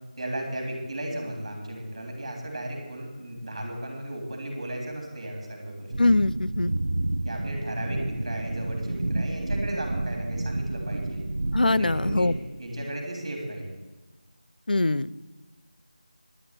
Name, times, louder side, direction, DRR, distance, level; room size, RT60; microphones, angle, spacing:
voice 1, 0.2-5.9 7.3-11.2 11.7-13.7, right 1 dB, 40° right, 2 dB, 3.5 m, -35 dB
sound 1, 5.9-12.4, right 2 dB, 70° right, 0.7 m, -30 dB
voice 2, 6.0-6.7 11.5-12.3 14.7-15.1, left 2 dB, 85° left, 18 dB, 0.5 m, -22 dB
11.0 x 6.9 x 9.3 m, 1.2 s
figure-of-eight pair, 175°, 5 cm